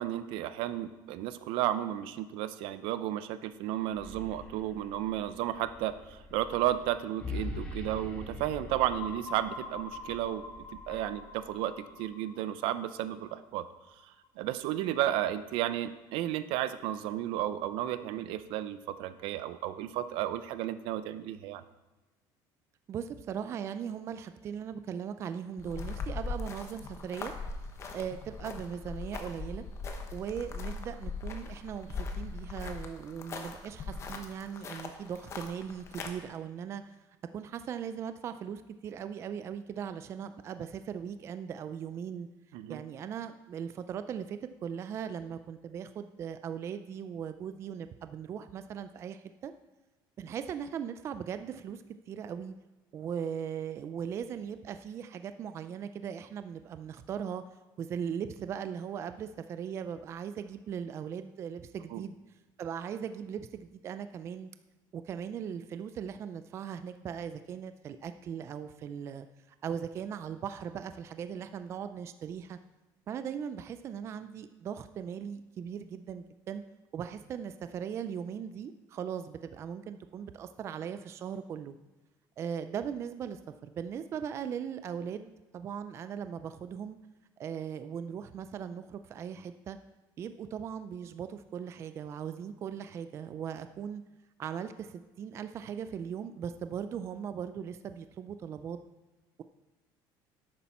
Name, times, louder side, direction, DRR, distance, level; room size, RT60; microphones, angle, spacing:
voice 1, 0.0-10.4 10.9-13.6 14.4-21.6 42.5-42.8 61.9-62.0, right 12 dB, 75° right, 13 dB, 0.6 m, -33 dB
sound 1, 3.8-11.9, left 2 dB, 10° left, 1.3 m, -44 dB
sound 2, 8.9-14.5, left 3 dB, 55° left, 1.4 m, -46 dB
voice 2, 22.9-27.3 27.9-29.6 30.1-37.0 37.3-42.3 42.7-49.5 50.2-52.5 52.9-57.4 57.8-62.2 62.6-64.5 64.9-69.3 69.6-72.6 73.1-76.6 76.9-81.7 82.4-87.0 87.4-89.8 90.2-94.0 94.4-98.8, right 8 dB, 30° right, 10 dB, 0.4 m, -39 dB
sound 3, 25.6-36.1, left 4 dB, 30° left, 1.0 m, -40 dB
11.5 x 8.5 x 4.3 m, 1.1 s
cardioid pair, 165°, 9 cm